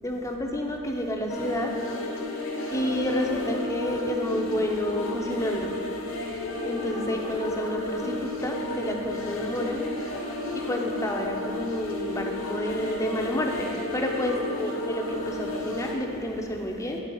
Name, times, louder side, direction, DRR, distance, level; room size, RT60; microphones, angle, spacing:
voice 1, 0.0-1.7 2.7-5.7 6.6-9.8 10.5-17.0, equal, 15° left, 1 dB, 0.6 m, -29 dB
sound 1, 1.3-15.9, left 2 dB, 60° left, 1.0 m, -32 dB
10.5 x 3.9 x 4.5 m, 2.7 s
head